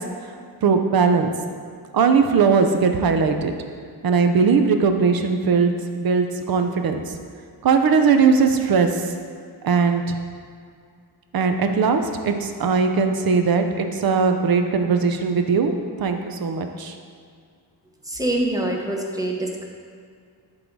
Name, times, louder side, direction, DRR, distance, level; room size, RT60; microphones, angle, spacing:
voice 1, 0.6-1.3 1.9-3.5 4.0-7.0 7.6-8.9 9.6-10.2 11.3-15.7 16.0-17.0, right 5 dB, 55° right, 6 dB, 0.7 m, -19 dB
voice 2, 18.1-19.6, right 1 dB, 10° right, 0 dB, 0.9 m, -25 dB
11.5 x 3.9 x 4.6 m, 2.2 s
wide cardioid pair, 135°, 42 cm